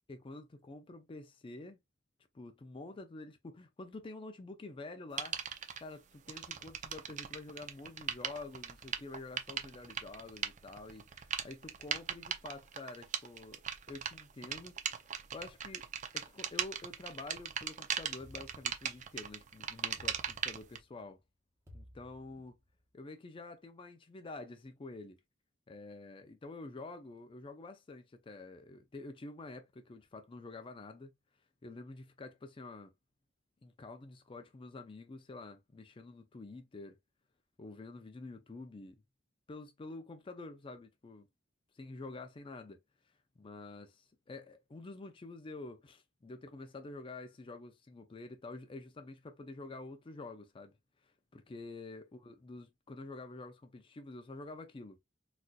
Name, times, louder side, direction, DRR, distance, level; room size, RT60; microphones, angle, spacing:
voice 1, 0.1-1.8 2.3-5.4 5.8-13.6 13.9-15.9 16.1-21.2 21.7-22.6 22.9-25.2 25.7-31.1 31.6-32.9 33.6-37.0 37.6-39.0 39.5-41.3 41.7-42.8 43.0-43.1 43.4-50.8 51.0-55.0, left 2 dB, 25° left, 0.4 m, -48 dB
sound 1, 5.2-5.8 6.3-20.8, right 8 dB, 40° right, 0.5 m, -39 dB
sound 2, 18.2-19.3 20.0-21.0 21.7-22.8, left 1 dB, 15° right, 1.0 m, -57 dB
4.1 x 2.5 x 2.3 m
head